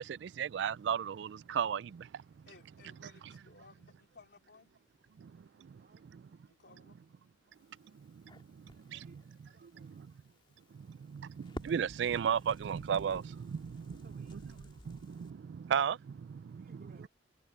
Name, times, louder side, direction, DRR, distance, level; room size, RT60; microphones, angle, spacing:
voice 1, 0.0-2.2 3.0-3.4 5.2-5.3 5.6-5.8 8.1-9.0 9.8-9.9 10.7-14.4 14.9-16.8, right 8 dB, 80° right, 0.3 m, -35 dB
voice 2, 2.5-4.7 6.5-7.0, left 4 dB, 65° left, 3.9 m, -59 dB
Crackle, 7.5-15.3, left 1 dB, 30° left, 2.5 m, -53 dB
voice 3, 8.6-9.2 9.5-10.1 13.9-14.6 16.4-17.1, right 2 dB, 55° right, 2.9 m, -63 dB
head